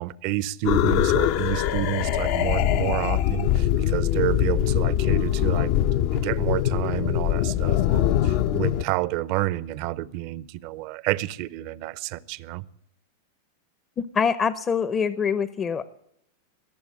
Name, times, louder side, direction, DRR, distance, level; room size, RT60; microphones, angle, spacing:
voice 1, 0.0-5.7 6.1-12.6, right 16 dB, 55° right, 0.7 m, -29 dB
sound 1, 0.6-8.8, left 11 dB, 55° left, 0.7 m, -23 dB
voice 2, 14.1-15.9, left 6 dB, 25° left, 0.7 m, -24 dB
20.0 x 7.1 x 10.0 m
hypercardioid pair, 115°, 0 cm